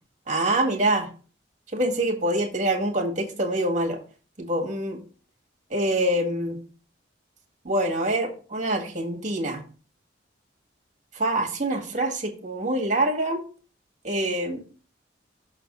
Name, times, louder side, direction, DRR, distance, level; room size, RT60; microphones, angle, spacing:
voice 1, 0.3-1.1 1.7-4.0 4.4-5.0 5.7-6.6 7.7-9.6 11.2-13.4 14.0-14.6, right 1 dB, 40° right, 2 dB, 1.8 m, -25 dB
6.3 x 4.1 x 5.3 m, 0.38 s
head